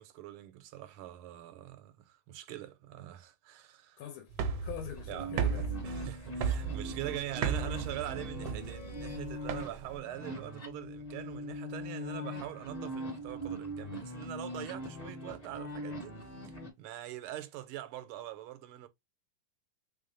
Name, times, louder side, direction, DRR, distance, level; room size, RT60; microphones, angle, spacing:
voice 1, 0.0-4.0 5.1-5.3 5.8-16.2 16.4-18.9, right 13 dB, 85° right, 1.5 m, -43 dB
voice 2, 4.0-5.7 6.1-6.4, left 10 dB, 80° left, 1.5 m, -45 dB
sound 1, 4.3-10.0, right 7 dB, 70° right, 1.1 m, -35 dB
sound 2, 5.0-16.7, left 1 dB, 30° left, 0.7 m, -41 dB
3.6 x 3.5 x 2.6 m
omnidirectional pair, 2.4 m